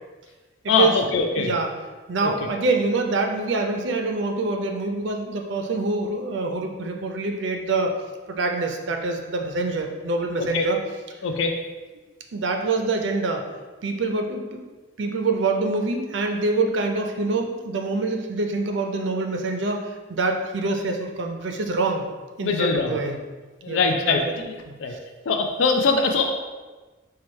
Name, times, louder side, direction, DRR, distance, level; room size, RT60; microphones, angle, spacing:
voice 1, 0.7-1.5 2.2-2.3 10.4-10.7 11.2-11.6 22.4-23.0 23.6-24.5 24.8-24.9 25.3-26.3, left 4 dB, 75° left, 4 dB, 0.4 m, -22 dB
voice 2, 1.4-1.7 2.1-7.9 8.3-10.8 12.3-13.5 13.8-14.6 15.0-22.1 22.4-23.2 23.7-24.3 24.7-25.0, right 3 dB, 65° right, 3 dB, 0.5 m, -25 dB
4.6 x 2.3 x 4.3 m, 1.3 s
head